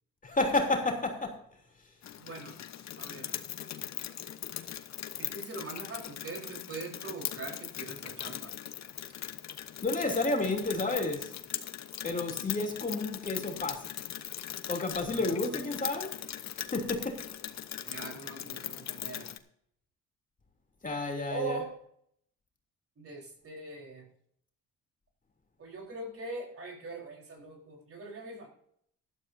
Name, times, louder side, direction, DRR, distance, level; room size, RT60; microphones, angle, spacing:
voice 1, 0.2-1.4 9.8-11.3 12.0-13.9 14.7-16.1 16.5-17.2 20.8-21.6, left 2 dB, 25° left, 2 dB, 3.0 m, -31 dB
Rain, 2.0-19.4, left 11 dB, 65° left, 1.0 m, -40 dB
voice 2, 2.2-2.6 3.0-3.4 5.2-8.5 15.1-15.7 17.8-19.3 21.3-21.7 23.0-24.1 25.6-28.5, right 3 dB, 50° right, 0 dB, 4.2 m, -42 dB
16.0 x 12.0 x 2.7 m, 0.68 s
cardioid pair, 90°, 30 cm